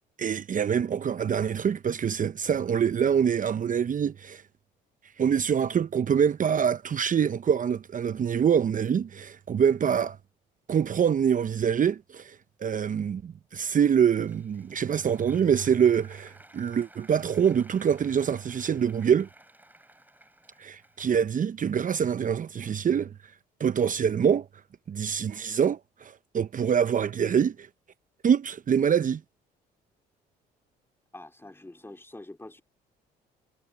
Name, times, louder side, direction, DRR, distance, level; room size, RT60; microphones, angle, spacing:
voice 1, 0.2-4.4 5.2-10.2 10.7-19.3 20.6-23.1 23.6-24.5 24.9-27.7 28.2-29.2, right 8 dB, 40° right, 0.9 m, -25 dB
Applause, 13.8-21.5, right 1 dB, 10° right, 5.3 m, -55 dB
voice 2, 31.1-32.6, left 2 dB, 10° left, 2.8 m, -45 dB
hypercardioid pair, 60°, 20 cm